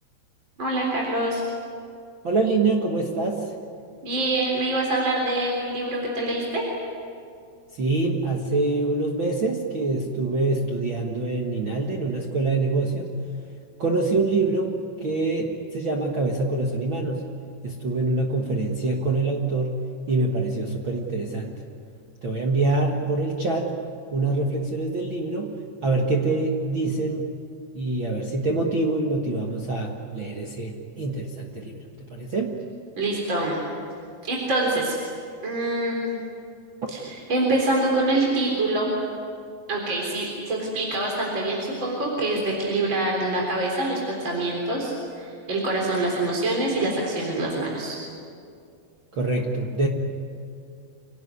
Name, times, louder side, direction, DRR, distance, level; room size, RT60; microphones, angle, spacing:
voice 1, 0.6-1.4 4.0-6.6 33.0-33.6 34.2-35.0 35.4-36.1 36.9-37.0 37.3-38.9 39.7-48.0, right 2 dB, 30° right, -2 dB, 4.0 m, -25 dB
voice 2, 2.2-3.5 7.7-13.1 13.8-17.3 17.6-19.8 20.1-21.6 22.2-23.7 24.1-27.3 27.7-32.6 49.1-49.9, right 3 dB, 80° right, 0 dB, 1.1 m, -25 dB
27.0 x 18.5 x 9.6 m, 2.4 s
omnidirectional pair, 5.0 m